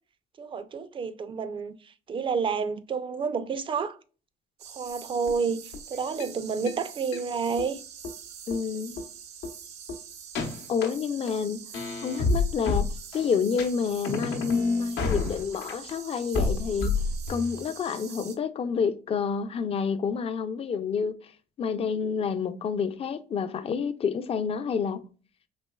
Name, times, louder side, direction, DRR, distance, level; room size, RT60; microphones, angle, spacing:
voice 1, 0.4-1.7 2.1-4.0 4.8-7.8, right 5 dB, 30° right, 0.4 m, -29 dB
sound 1, 4.6-18.4, right 7 dB, 85° right, 0.8 m, -45 dB
sound 2, 5.3-5.4 5.7-5.8 6.2-6.3 6.7-6.8 7.1-7.2 7.6-7.7 8.0-8.1 8.5-8.6 9.0-9.1 9.4-9.5 9.9-10.0 10.4-10.9 11.3-11.4 11.7-13.3 13.6-13.7 14.0-15.9 16.3-17.6, left 4 dB, 85° left, 0.9 m, -28 dB
voice 2, 8.5-9.0 10.7-11.7 12.0-12.9 13.1-17.0 17.3-21.3 21.6-25.1, left 6 dB, 35° left, 0.4 m, -29 dB
4.1 x 3.0 x 2.2 m
cardioid pair, 110°, 17 cm